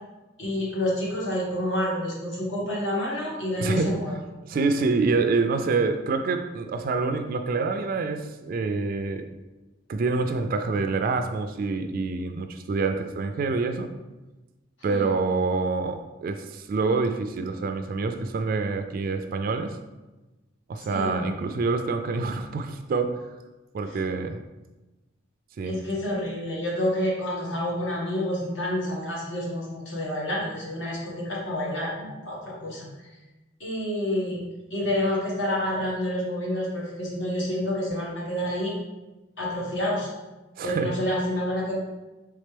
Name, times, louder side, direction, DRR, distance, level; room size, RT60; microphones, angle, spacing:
voice 1, 0.4-4.2 14.9-15.1 20.8-21.1 25.7-32.9 33.6-34.4 34.7-38.7 39.4-40.1 40.6-41.8, left 1 dB, 75° left, -4 dB, 1.5 m, -28 dB
voice 2, 3.6-3.9 4.5-9.3 9.9-13.9 14.8-19.8 20.7-23.2 23.7-24.4 25.6-25.8 40.6-40.9, right 4 dB, 50° right, 7 dB, 0.3 m, -26 dB
4.3 x 3.5 x 3.3 m, 1.1 s
head